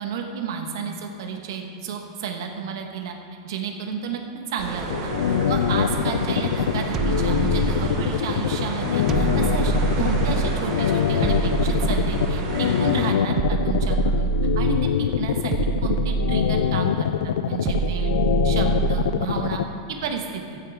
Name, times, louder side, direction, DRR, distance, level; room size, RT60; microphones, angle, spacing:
voice 1, 0.0-3.1 3.4-4.2 4.5-5.1 5.5-14.3 14.5-15.5 15.8-18.1 18.4-20.6, right 6 dB, 55° right, 3 dB, 1.5 m, -32 dB
sound 1, 4.6-13.1, right 3 dB, 35° right, 1.5 m, -31 dB
sound 2, 4.9-19.6, left 9 dB, 85° left, 0.6 m, -23 dB
sound 3, 6.9-8.3 9.1-10.7 11.2-12.6 13.4-15.0 15.5-16.9 17.6-19.3, right 6 dB, 20° right, 0.3 m, -25 dB
15.5 x 11.5 x 3.7 m, 2.4 s
supercardioid pair, 175°, 3 cm